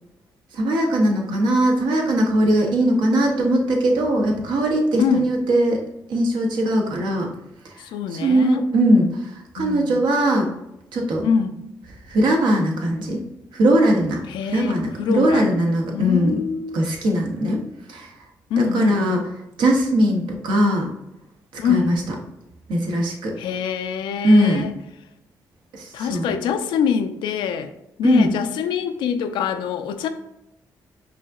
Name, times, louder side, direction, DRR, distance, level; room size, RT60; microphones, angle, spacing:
voice 1, 0.6-5.8 6.1-7.3 8.2-9.1 9.5-10.4 10.9-11.2 12.1-13.2 13.5-14.2 14.5-16.3 16.7-17.6 17.9-18.1 18.6-19.2 19.6-20.9 21.6-21.9 22.7-23.3 24.2-24.6 25.8-26.3 28.0-28.3, right 1 dB, 80° right, 0.8 m, -19 dB
voice 2, 5.0-5.3 7.8-8.7 9.6-10.0 11.2-11.6 14.3-15.5 15.9-16.8 18.5-19.0 21.6-21.9 23.4-24.7 25.9-27.7 28.0-30.1, left 7 dB, 85° left, 0.3 m, -24 dB
4.8 x 2.7 x 2.4 m
supercardioid pair, 60°, 8 cm